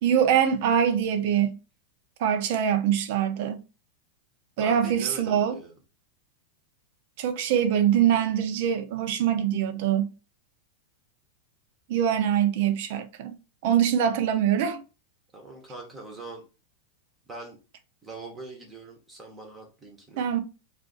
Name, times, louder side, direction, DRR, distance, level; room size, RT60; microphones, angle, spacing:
voice 1, 0.0-1.5 2.2-3.6 4.6-5.5 7.2-10.1 11.9-13.3 13.6-14.8 20.2-20.4, right 9 dB, 55° right, 0.5 m, -23 dB
voice 2, 4.6-5.8 15.3-16.4 17.3-17.6 18.0-20.3, right 3 dB, 15° right, 0.8 m, -42 dB
2.5 x 2.4 x 3.7 m
supercardioid pair, 150°, 0 cm